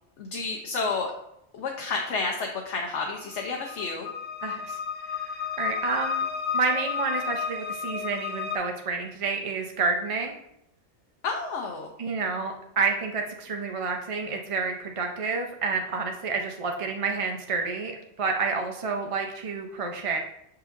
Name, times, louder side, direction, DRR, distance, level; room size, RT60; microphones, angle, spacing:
voice 1, 0.2-1.1 1.5-4.1 11.2-11.9, left 4 dB, 75° left, 1 dB, 1.0 m, -30 dB
sound 1, 2.8-8.6, left 7 dB, 45° left, 0.7 m, -32 dB
voice 2, 4.4-4.8 5.1-6.3 6.5-10.3 12.0-20.2, right 4 dB, 40° right, 3 dB, 0.5 m, -29 dB
6.7 x 5.7 x 2.5 m, 0.79 s
omnidirectional pair, 1.2 m